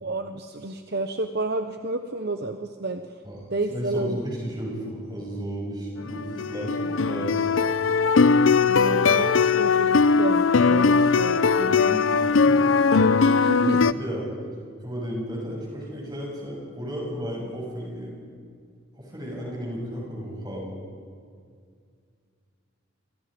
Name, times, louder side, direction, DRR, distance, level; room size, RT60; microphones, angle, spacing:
voice 1, 0.0-3.0 3.5-4.2 8.7-11.9 13.3-13.8, right 2 dB, 50° right, 6 dB, 0.9 m, -30 dB
voice 2, 3.7-7.6 8.7-9.0 10.9-11.1 11.6-12.8 13.5-14.3 14.8-18.2 19.0-20.7, equal, 20° right, -3 dB, 7.2 m, -34 dB
sound 1, 6.0-13.9, left 5 dB, 70° left, 0.6 m, -20 dB
29.0 x 24.0 x 5.2 m, 2.2 s
head